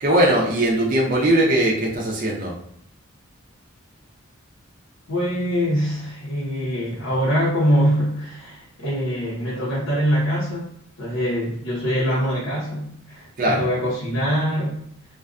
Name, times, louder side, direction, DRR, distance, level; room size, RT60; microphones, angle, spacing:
voice 1, 0.0-2.5 13.4-13.6, right 1 dB, 40° right, -2 dB, 0.5 m, -19 dB
voice 2, 5.1-10.7 11.0-14.8, equal, 80° left, -9 dB, 0.8 m, -23 dB
2.4 x 2.2 x 2.4 m, 0.68 s
head